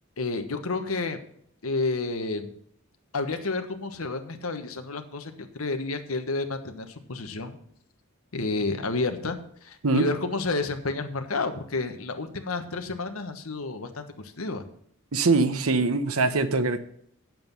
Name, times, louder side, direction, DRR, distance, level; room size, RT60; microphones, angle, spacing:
voice 1, 0.2-1.2 1.6-2.5 3.1-7.6 8.3-14.6, left 3 dB, 75° left, 7 dB, 1.3 m, -30 dB
voice 2, 15.1-16.8, right 3 dB, 85° right, 10 dB, 1.0 m, -23 dB
9.6 x 7.6 x 5.5 m, 0.66 s
head